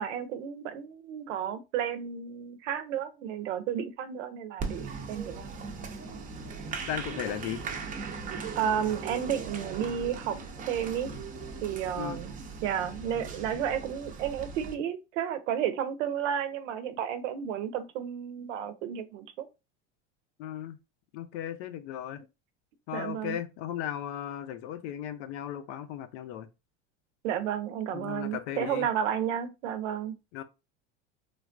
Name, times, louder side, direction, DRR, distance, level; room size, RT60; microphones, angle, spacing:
voice 1, 0.0-5.5 8.6-10.4 10.7-11.1 11.6-12.3 12.6-19.5 22.9-23.4 27.2-30.2, right 9 dB, 85° right, 0.6 m, -32 dB
Applause, 4.6-14.7, right 4 dB, 25° right, 0.5 m, -39 dB
voice 2, 6.9-7.6 12.0-12.2 20.4-20.8 21.1-22.2 22.9-26.5 27.9-28.9 30.3-30.4, left 10 dB, 70° left, 0.6 m, -36 dB
3.4 x 2.2 x 2.5 m
supercardioid pair, 115°, 36 cm